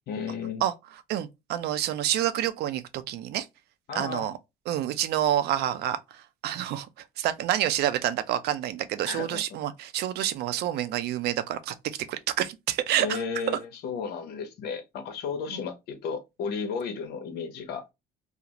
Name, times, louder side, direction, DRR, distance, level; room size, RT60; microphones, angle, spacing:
voice 1, 0.1-0.6 3.9-4.3 9.1-9.4 13.0-17.8, left 5 dB, 70° left, 0.8 m, -33 dB
voice 2, 1.1-3.5 3.9-4.3 4.7-6.0 6.4-6.9 7.2-11.7 12.1-13.2 13.5-13.6, right 12 dB, 75° right, 0.5 m, -28 dB
2.5 x 2.4 x 2.8 m
cardioid pair, 110°, 17 cm